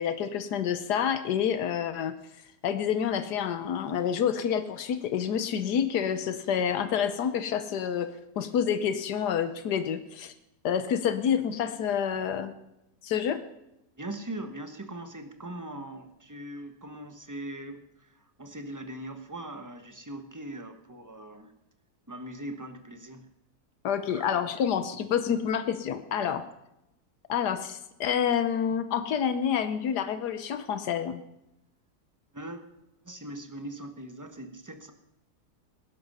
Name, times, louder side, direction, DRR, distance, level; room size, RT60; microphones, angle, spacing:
voice 1, 0.0-2.1 2.6-10.3 10.6-12.5 13.0-13.4 23.8-26.4 27.3-31.2, left 8 dB, 90° left, 11 dB, 1.5 m, -28 dB
voice 2, 14.0-17.8 18.4-21.5 22.1-23.3 24.1-24.3 32.3-32.7 33.0-34.9, right 1 dB, 15° right, 7 dB, 1.2 m, -40 dB
19.0 x 11.0 x 5.5 m, 0.87 s
omnidirectional pair, 1.7 m